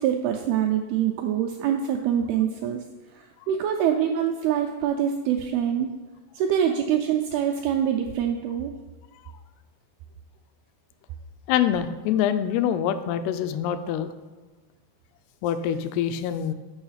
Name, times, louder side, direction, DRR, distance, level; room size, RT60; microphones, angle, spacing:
voice 1, 0.0-2.8 3.1-5.9 6.3-8.7, right 9 dB, 85° right, 3 dB, 2.2 m, -25 dB
voice 2, 11.5-14.1 15.4-16.5, left 9 dB, 85° left, 10 dB, 2.4 m, -25 dB
7.1 x 5.5 x 5.6 m, 1.3 s
omnidirectional pair, 4.9 m